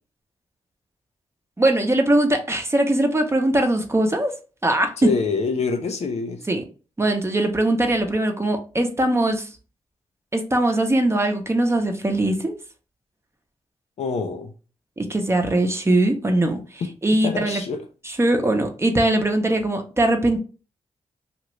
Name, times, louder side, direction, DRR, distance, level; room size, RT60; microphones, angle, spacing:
voice 1, 1.6-4.3 4.6-5.1 6.5-6.6 7.0-9.5 10.3-12.5 15.0-17.6 18.0-20.4, right 1 dB, 25° right, 0.7 m, -21 dB
voice 2, 5.0-6.4 14.0-14.5 16.8-16.9 17.2-17.8, left 5 dB, 75° left, 0.6 m, -25 dB
2.8 x 2.5 x 3.1 m
cardioid pair, 55°, 11 cm